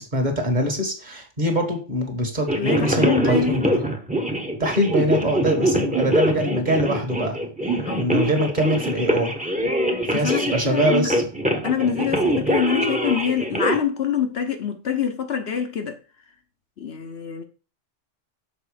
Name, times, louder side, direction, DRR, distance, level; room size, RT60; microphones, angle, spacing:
voice 1, 0.0-3.8 4.6-7.4 8.0-9.3 10.1-11.2, right 1 dB, 40° right, 1.7 m, -23 dB
sound 1, 2.5-13.8, right 1 dB, 5° right, 0.9 m, -23 dB
voice 2, 2.6-3.7 5.6-5.8 7.8-8.1 10.1-11.1 11.6-16.0 16.8-17.4, left 7 dB, 60° left, 1.0 m, -25 dB
6.9 x 4.6 x 4.9 m
omnidirectional pair, 1.3 m